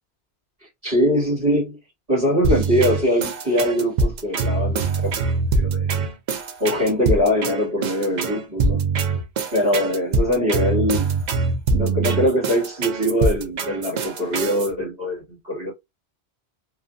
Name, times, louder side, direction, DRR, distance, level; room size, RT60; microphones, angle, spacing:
voice 1, 0.6-1.8 2.1-5.9 6.6-8.8 9.5-11.1 11.7-15.7, equal, 40° right, 1.7 m, -22 dB
sound 1, 2.4-14.7, right 3 dB, 55° right, 0.5 m, -23 dB
2.7 x 2.5 x 2.5 m
omnidirectional pair, 1.1 m